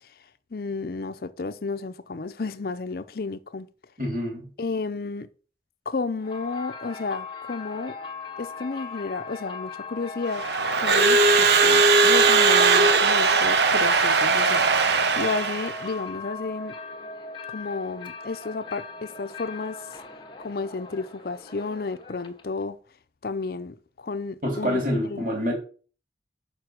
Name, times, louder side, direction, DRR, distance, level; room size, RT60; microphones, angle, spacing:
voice 1, 0.5-3.7 4.6-5.3 5.9-8.0 8.4-10.4 10.7-14.6 15.2-16.8 17.5-19.8 20.4-22.8 23.2-25.2, left 4 dB, 55° left, 0.5 m, -32 dB
voice 2, 4.0-4.5 24.4-25.5, equal, 50° right, 2.6 m, -26 dB
sound 1, 6.2-22.6, left 4 dB, 25° left, 0.9 m, -39 dB
Crowd / Alarm, 10.3-15.9, right 4 dB, 70° right, 0.8 m, -19 dB
6.4 x 5.2 x 6.0 m
head